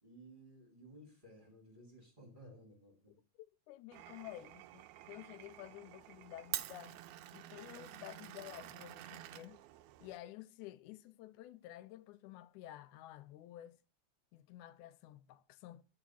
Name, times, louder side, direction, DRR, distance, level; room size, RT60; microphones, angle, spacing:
voice 1, 0.0-3.2, right 1 dB, 15° right, 2.3 m, -57 dB
voice 2, 3.4-7.0 7.3-9.6 10.0-13.8 14.3-15.8, left 14 dB, 90° left, 2.0 m, -52 dB
Glass, 3.9-10.2, right 14 dB, 80° right, 1.8 m, -48 dB
8.5 x 5.0 x 5.5 m
omnidirectional pair, 3.4 m